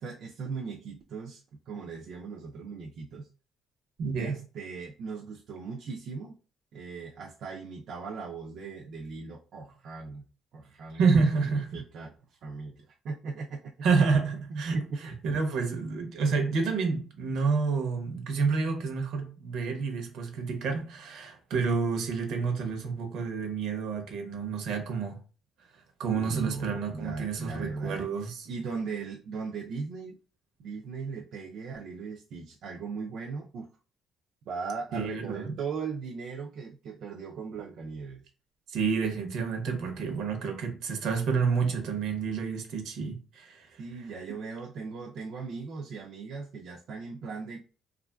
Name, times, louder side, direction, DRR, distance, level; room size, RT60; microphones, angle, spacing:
voice 1, 0.0-3.3 4.1-6.4 6.7-10.2 10.5-11.1 11.4-13.7 14.5-15.0 26.1-28.1 28.5-30.2 30.6-33.7 34.5-38.2 43.8-47.6, right 4 dB, 60° right, 0.4 m, -38 dB
voice 2, 4.0-4.4 10.9-11.8 13.8-25.2 26.0-28.5 34.9-35.5 38.7-43.8, right 5 dB, 75° right, 0.8 m, -29 dB
3.0 x 2.4 x 2.2 m
cardioid pair, 150°, 0 cm